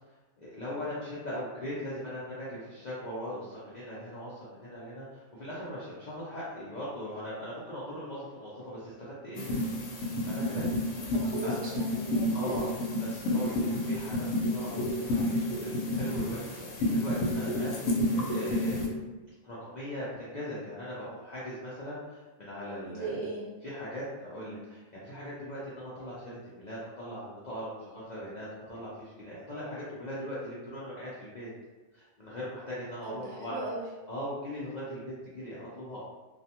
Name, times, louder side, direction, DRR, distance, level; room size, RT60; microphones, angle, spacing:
voice 1, 0.4-9.5 9.9-10.7 11.0-11.1 11.4-11.5 12.3-12.7 13.0-18.8 19.4-23.2 23.6-31.5 31.9-33.6 34.1-36.0, equal, 60° left, -8 dB, 0.4 m, -40 dB
sound 1, 9.4-18.9, left 1 dB, 75° left, 0.9 m, -30 dB
voice 2, 10.9-12.6 17.6-18.2 22.9-23.5 24.3-24.6 33.0-33.8, right 3 dB, 65° right, -5 dB, 1.0 m, -39 dB
2.4 x 2.2 x 2.7 m, 1.2 s
omnidirectional pair, 1.4 m